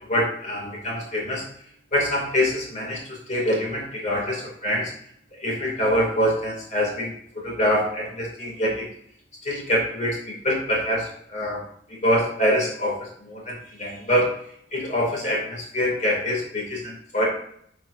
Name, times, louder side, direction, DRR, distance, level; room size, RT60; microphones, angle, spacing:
voice 1, 0.1-1.4 1.9-3.0 3.3-4.9 5.4-7.1 7.4-8.9 9.4-11.6 12.0-13.5 13.8-14.3 14.7-17.3, equal, 40° left, -3 dB, 2.3 m, -24 dB
9.1 x 4.6 x 2.5 m, 0.67 s
head